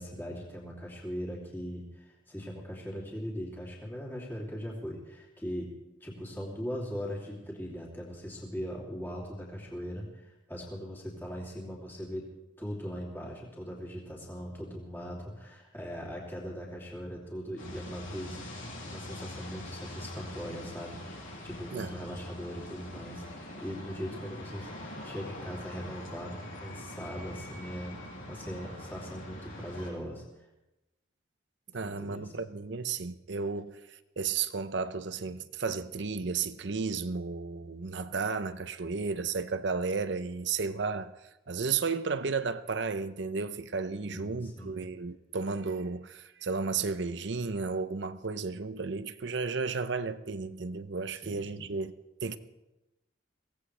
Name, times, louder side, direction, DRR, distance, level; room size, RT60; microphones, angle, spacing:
voice 1, 0.0-12.3 12.6-18.4 18.8-24.7 25.0-27.9 28.3-30.4 31.8-32.3 44.0-44.8 51.2-51.7, equal, 10° left, 2.9 m, -40 dB
sound 1, 17.6-29.9, left 1 dB, 85° left, 6.3 m, -43 dB
voice 2, 31.7-33.8 34.2-41.1 41.5-51.9 52.2-52.4, right 4 dB, 65° right, 0.7 m, -33 dB
23.0 x 17.0 x 3.3 m
head